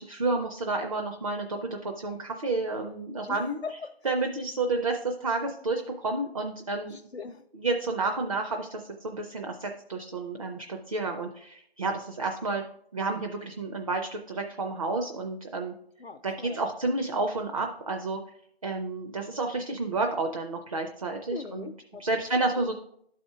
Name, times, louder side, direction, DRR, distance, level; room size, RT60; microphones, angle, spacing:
voice 1, 0.0-3.6 4.0-7.0 7.5-12.6 12.9-15.7 16.2-18.2 18.6-21.7 22.0-22.7, right 3 dB, 35° right, 3 dB, 0.5 m, -30 dB
voice 2, 3.3-4.0 6.8-7.4 16.0-16.7 21.3-22.5, left 5 dB, 80° left, 4 dB, 0.6 m, -41 dB
11.5 x 4.3 x 3.6 m, 0.68 s
figure-of-eight pair, 145°, 31 cm